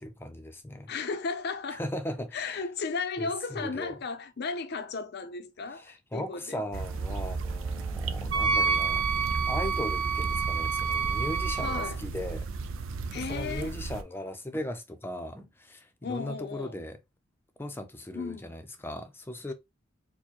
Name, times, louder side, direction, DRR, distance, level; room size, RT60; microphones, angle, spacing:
voice 1, 0.0-0.9 1.7-2.6 3.2-4.0 5.7-9.0 9.5-12.5 13.1-17.0 17.6-19.5, left 1 dB, 10° left, 0.5 m, -38 dB
voice 2, 0.9-1.8 2.3-6.6 8.2-8.4 11.6-12.0 13.1-13.7 16.0-16.8 18.1-18.4, left 4 dB, 55° left, 0.6 m, -35 dB
sound 1, 6.7-14.0, right 4 dB, 90° right, 0.5 m, -34 dB
Wind instrument woodwind instrument, 8.3-11.9, right 6 dB, 70° right, 0.8 m, -28 dB
4.5 x 2.1 x 2.9 m
head